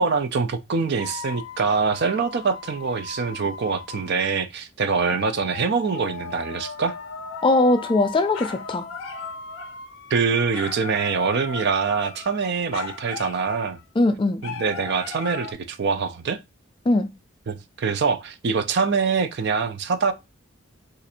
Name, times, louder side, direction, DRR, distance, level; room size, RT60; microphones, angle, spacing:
voice 1, 0.0-6.9 10.1-13.8 14.4-16.4 17.5-20.1, right 5 dB, 55° right, 0.4 m, -24 dB
sound 1, 1.0-4.1 4.8-13.8 14.4-15.5, left 5 dB, 85° left, 0.6 m, -37 dB
voice 2, 7.4-8.9 14.0-14.4 16.9-17.1, left 2 dB, 25° left, 0.3 m, -20 dB
2.5 x 2.5 x 4.1 m
head